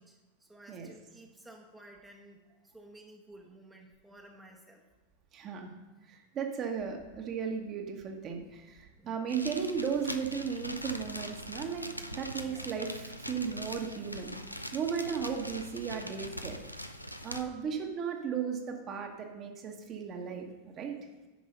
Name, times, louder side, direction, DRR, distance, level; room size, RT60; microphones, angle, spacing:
voice 1, 0.0-2.4 2.7-4.8 9.0-9.2 12.4-12.7, right 1 dB, 5° right, -1 dB, 1.1 m, -54 dB
voice 2, 5.3-5.7 6.1-14.3 14.7-16.9 17.2-20.5 20.8-21.0, right 6 dB, 30° right, 2 dB, 1.3 m, -35 dB
sound 1, 9.3-17.4, equal, 90° left, 0.5 m, -42 dB
10.5 x 5.4 x 5.4 m, 1.2 s
figure-of-eight pair, 90°, 0 cm